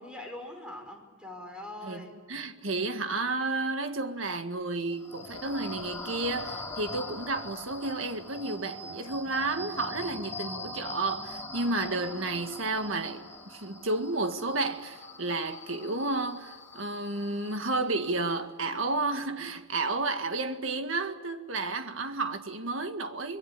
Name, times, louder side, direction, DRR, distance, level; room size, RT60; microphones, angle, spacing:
voice 1, 0.0-2.2, left 1 dB, 5° right, 5.5 m, -42 dB
voice 2, 1.8-23.4, right 2 dB, 75° right, 1.9 m, -32 dB
sound 1, 4.9-18.3, left 1 dB, 15° left, 3.2 m, -42 dB
25.5 x 22.0 x 8.4 m
head